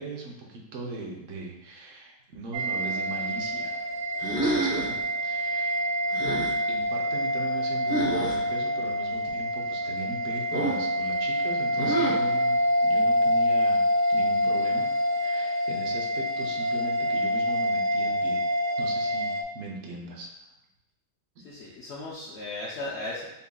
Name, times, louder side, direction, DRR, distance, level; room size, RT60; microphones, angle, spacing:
voice 1, 0.0-3.8 4.4-5.8 6.7-13.8 14.1-14.9 15.2-18.5 18.8-20.3, right 2 dB, 60° right, -1 dB, 0.9 m, -39 dB
sound 1, 2.5-19.4, equal, 85° right, 1.2 m, -26 dB
sound 2, 4.2-5.0 6.1-6.5 7.9-8.4 10.5-10.9 11.8-12.3, right 2 dB, 35° left, 0.6 m, -28 dB
voice 2, 21.4-23.3, left 2 dB, 70° left, -5 dB, 0.6 m, -36 dB
5.4 x 2.6 x 2.2 m, 0.94 s
omnidirectional pair, 1.8 m